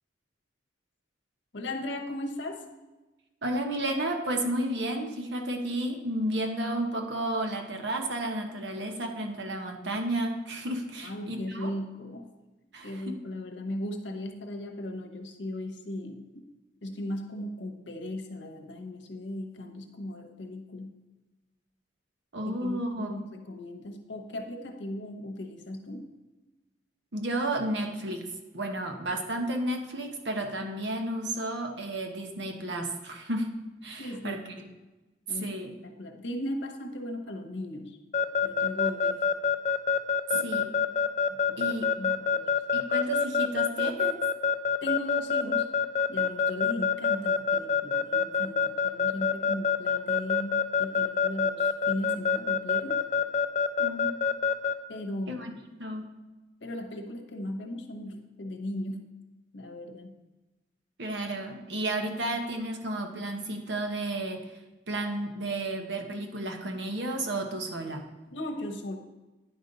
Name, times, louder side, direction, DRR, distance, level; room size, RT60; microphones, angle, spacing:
voice 1, 1.5-2.7 11.0-12.3 12.8-16.5 16.8-21.0 22.4-26.1 34.0-34.4 35.3-35.6 35.8-38.0 38.4-39.2 40.3-40.5 41.3-42.5 44.8-45.7 46.1-53.1 54.9-55.6 56.6-59.1 59.5-60.1 68.3-69.0, left 1 dB, 75° left, 4 dB, 0.9 m, -37 dB
voice 2, 3.4-11.7 12.7-13.2 22.3-23.2 27.1-28.3 28.5-33.5 33.8-34.4 35.3-35.7 40.3-40.7 41.6-41.9 42.7-44.2 53.8-54.1 55.3-55.5 55.8-56.1 61.0-64.5 64.9-68.0, right 1 dB, 70° right, 3 dB, 1.0 m, -32 dB
Keyboard (musical) / Alarm, 38.1-54.7, left 6 dB, 40° left, 0.3 m, -25 dB
9.9 x 5.2 x 3.9 m, 1.1 s
head